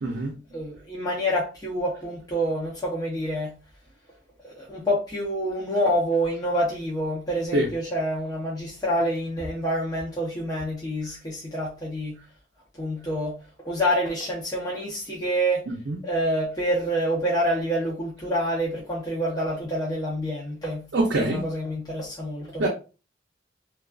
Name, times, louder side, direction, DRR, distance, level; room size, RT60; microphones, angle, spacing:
voice 1, 0.0-0.3 7.5-7.7 15.7-16.0 20.9-21.4 22.6-22.7, right 1 dB, 65° right, 0.5 m, -24 dB
voice 2, 0.5-3.6 4.4-12.2 12.8-13.4 13.6-15.7 16.0-20.9 21.1-22.7, equal, 20° left, 0.6 m, -27 dB
2.3 x 2.3 x 2.3 m
head